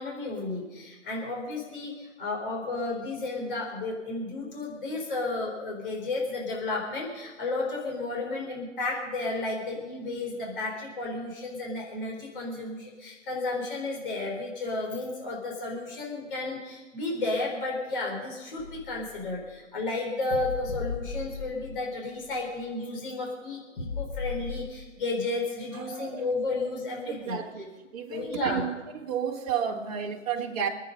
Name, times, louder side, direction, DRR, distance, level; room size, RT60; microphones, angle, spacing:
voice 1, 0.0-27.4 28.1-28.7, left 2 dB, 40° left, -1 dB, 4.4 m, -33 dB
sound 1, 18.6-19.4 20.3-22.0 22.2-22.3 23.8-24.9, left 4 dB, 80° left, 3.5 m, -36 dB
voice 2, 25.9-26.2 27.1-27.7 27.9-28.8 29.0-30.7, right 8 dB, 30° right, 0 dB, 1.9 m, -31 dB
26.5 x 9.3 x 5.3 m, 1.2 s
hypercardioid pair, 155°, 39 cm